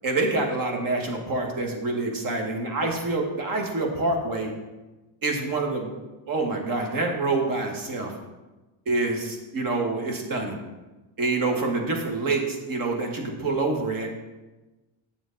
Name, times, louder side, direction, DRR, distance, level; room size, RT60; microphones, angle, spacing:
voice 1, 0.0-4.5 5.2-5.9 6.3-8.1 8.8-10.6 11.2-14.1, right 3 dB, 45° right, 2 dB, 1.5 m, -26 dB
7.9 x 7.2 x 3.9 m, 1.1 s
cardioid pair, 160°, 48 cm